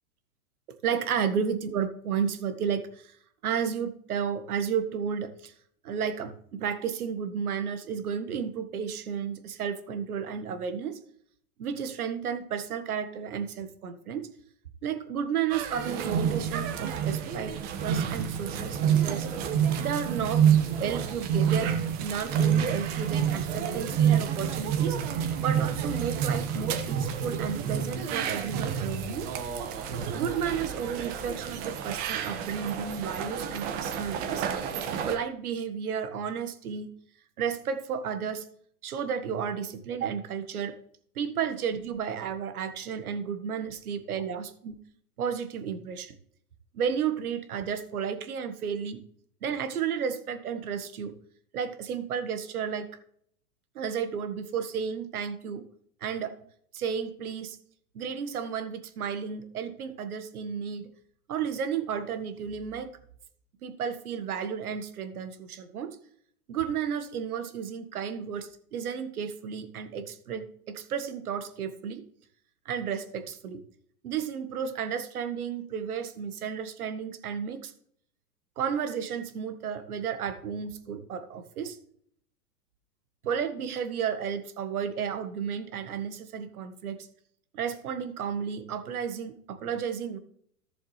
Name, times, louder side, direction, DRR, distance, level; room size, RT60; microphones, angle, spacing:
voice 1, 0.8-3.1 3.4-5.5 5.8-11.0 11.6-14.3 14.8-17.5 17.8-19.3 19.8-20.4 20.8-25.0 25.4-29.3 30.1-34.5 35.0-36.9 37.4-38.4 38.8-40.8 41.1-44.8 45.2-46.1 46.7-49.0 49.4-51.1 51.5-52.9 53.7-55.6 56.0-56.3 56.7-57.6 57.9-60.9 61.3-62.9 63.6-66.0 66.5-72.0 72.6-73.6 74.0-77.7 78.6-81.8 83.2-87.1 87.5-90.2, right 7 dB, 75° right, 10 dB, 1.6 m, -32 dB
sound 1, 15.5-35.2, right 8 dB, 40° right, 1.5 m, -28 dB
14.5 x 7.1 x 3.3 m, 0.65 s
hypercardioid pair, 125°, 45 cm